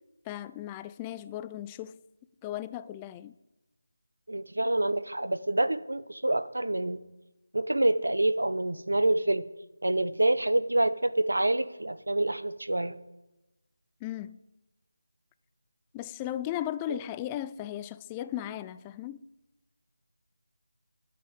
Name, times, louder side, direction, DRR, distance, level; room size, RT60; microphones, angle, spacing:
voice 1, 0.3-2.0 2.4-3.3 14.0-14.4 15.9-19.2, left 12 dB, 15° left, 0.3 m, -36 dB
voice 2, 4.3-7.0 7.5-9.4 9.8-13.0 16.9-17.0, right 1 dB, 90° right, 0.9 m, -27 dB
22.0 x 8.3 x 3.7 m
figure-of-eight pair, 170°, 0 cm